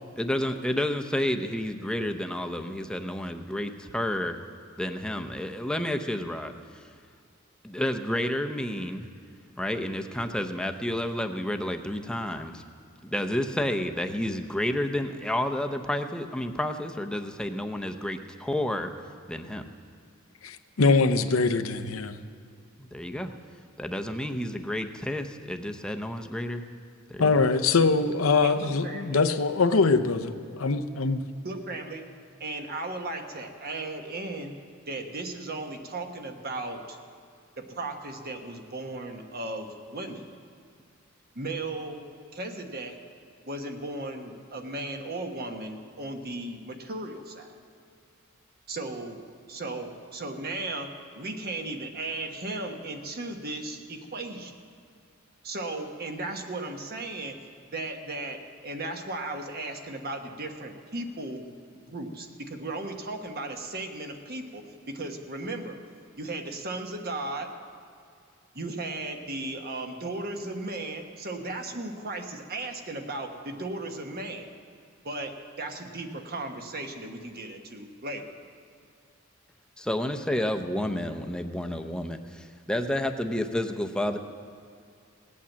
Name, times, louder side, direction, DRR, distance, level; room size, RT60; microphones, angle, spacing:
voice 1, 0.2-4.4 4.8-6.8 7.6-9.1 9.6-12.6 13.0-18.9 19.3-19.6 22.8-23.3 23.8-26.6 27.1-27.4 79.8-84.2, left 1 dB, 5° left, 6 dB, 0.7 m, -30 dB
voice 2, 20.4-22.2 27.2-31.2, left 4 dB, 90° left, 9 dB, 0.7 m, -23 dB
voice 3, 28.4-29.2 31.4-32.0 32.4-34.5 34.9-37.0 37.6-40.3 41.3-42.0 42.3-43.0 43.5-47.5 48.7-49.2 49.5-54.5 55.4-57.4 57.7-61.4 61.9-65.8 66.2-67.5 68.5-74.5 75.0-78.3, right 2 dB, 50° right, 4 dB, 1.3 m, -36 dB
18.0 x 8.6 x 7.4 m, 2.3 s
head